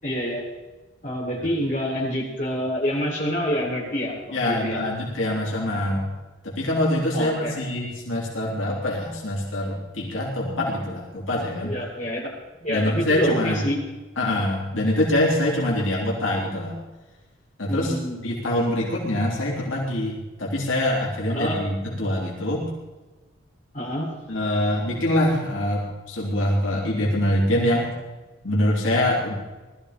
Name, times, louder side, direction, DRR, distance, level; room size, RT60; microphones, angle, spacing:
voice 1, 0.0-0.4 1.0-4.8 5.1-5.2 7.1-7.6 11.6-12.3 12.6-13.8 17.7-18.2 21.3-21.6 23.7-24.4, equal, 40° left, -6 dB, 6.4 m, -27 dB
voice 2, 4.3-6.1 6.4-11.7 12.7-13.6 14.2-16.8 17.6-17.9 18.2-22.7 24.3-27.9 28.4-29.4, left 1 dB, 85° left, -4 dB, 3.8 m, -24 dB
19.5 x 13.5 x 5.2 m, 1.2 s
head